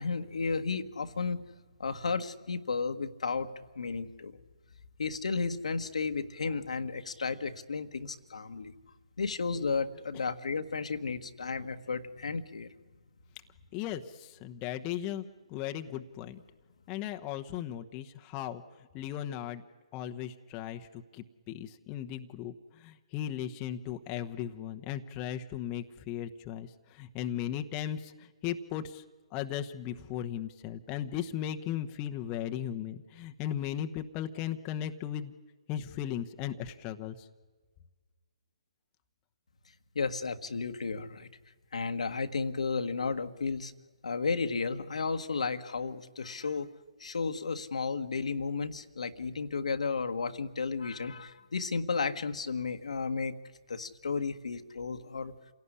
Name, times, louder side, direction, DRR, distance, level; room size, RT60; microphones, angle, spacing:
voice 1, 0.0-1.4 1.8-3.5 3.7-4.4 5.0-8.7 9.2-12.7 39.9-41.3 41.7-43.7 44.0-46.7 47.0-53.3 53.7-55.3, left 4 dB, 75° left, 7 dB, 1.5 m, -33 dB
voice 2, 13.7-15.2 15.5-16.4 16.9-18.6 18.9-19.6 19.9-20.8 21.5-22.5 22.8-26.7 26.9-28.1 28.4-29.0 29.3-35.3 35.7-37.1, left 10 dB, 25° left, 6 dB, 1.0 m, -36 dB
28.5 x 17.5 x 9.9 m, 1.4 s
hypercardioid pair, 145°, 4 cm